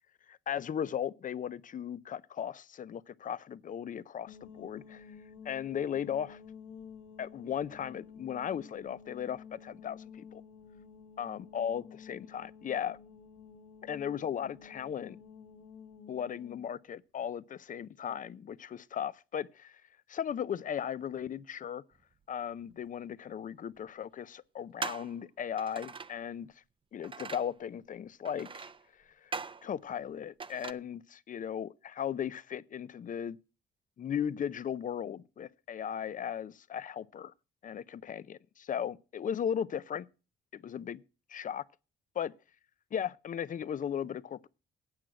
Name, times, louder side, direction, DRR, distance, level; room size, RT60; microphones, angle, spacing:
voice 1, 0.3-5.1 5.4-6.4 7.2-10.4 11.2-13.0 13.8-15.2 16.1-19.8 20.1-21.8 22.3-26.5 26.9-28.7 29.2-33.4 34.0-37.3 37.6-40.1 40.5-41.0 41.3-41.6 42.2-42.3 42.9-44.5, left 8 dB, 40° left, 0.5 m, -37 dB
sound 1, 4.3-16.6, left 6 dB, 75° left, 1.1 m, -52 dB
sound 2, 22.7-22.8 23.8-23.9 24.8-25.2 25.6-26.2 27.0-27.5 28.3-28.9 29.3-29.7 30.4-30.7, right 5 dB, 25° right, 0.5 m, -41 dB
8.9 x 6.1 x 7.6 m
cardioid pair, 90°, 20 cm